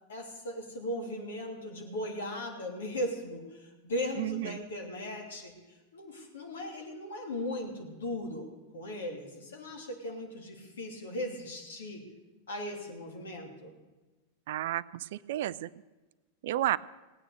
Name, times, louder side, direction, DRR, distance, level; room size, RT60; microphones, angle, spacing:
voice 1, 0.1-12.0 12.5-13.7, left 1 dB, 65° left, 1 dB, 3.0 m, -38 dB
voice 2, 4.2-4.6 14.5-15.7 16.4-16.8, right 14 dB, 55° right, 20 dB, 0.4 m, -31 dB
18.0 x 9.1 x 6.8 m, 1.2 s
figure-of-eight pair, 90°, 0 cm